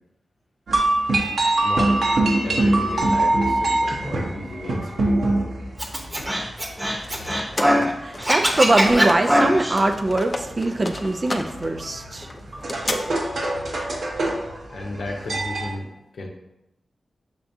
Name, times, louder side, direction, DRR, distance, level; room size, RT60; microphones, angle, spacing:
sound 1, 0.7-15.7, right 2 dB, 75° right, 0.9 m, -25 dB
voice 1, 1.6-2.0 2.4-5.3 14.7-16.3, left 2 dB, 80° left, 0 dB, 0.7 m, -34 dB
Scratching (performance technique), 5.8-7.9 8.2-9.8, equal, 20° right, 0.8 m, -21 dB
sound 2, 6.8-9.4 9.6-13.0, left 2 dB, 35° left, 0.5 m, -32 dB
voice 2, 8.0-12.3, right 2 dB, 40° right, 6 dB, 0.3 m, -22 dB
5.8 x 3.4 x 2.7 m, 0.91 s
cardioid pair, 55°, 0 cm